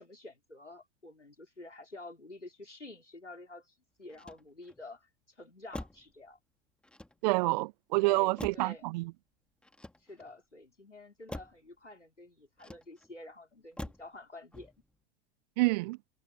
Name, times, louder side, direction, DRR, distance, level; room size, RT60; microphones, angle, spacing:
voice 1, 0.0-5.1 5.4-6.4 8.0-8.9 10.0-14.7, left 2 dB, 90° left, 4.3 m, -49 dB
Motor vehicle (road), 4.1-4.9 5.7-6.2 6.8-7.5 8.4-8.8 9.6-10.4 11.3-11.7 12.6-13.2 13.8-14.2 14.5-15.0, left 1 dB, 5° left, 2.0 m, -45 dB
voice 2, 7.2-9.1 15.6-16.0, right 23 dB, 40° right, 0.4 m, -28 dB
figure-of-eight pair, 95°, 35 cm